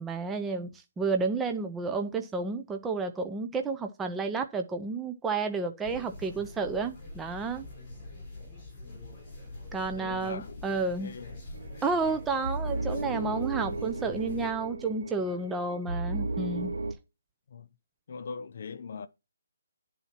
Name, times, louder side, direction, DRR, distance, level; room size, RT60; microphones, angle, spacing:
voice 1, 0.0-7.7 9.7-11.1 11.8-16.7, right 4 dB, 5° right, 0.5 m, -31 dB
sound 1, 5.8-14.5, left 2 dB, 25° left, 3.7 m, -45 dB
voice 2, 10.0-11.6 17.5-17.7 18.1-19.1, left 5 dB, 45° left, 0.6 m, -41 dB
sound 2, 11.5-16.9, right 2 dB, 70° right, 2.3 m, -35 dB
10.5 x 4.1 x 5.8 m
hypercardioid pair, 170°, 0 cm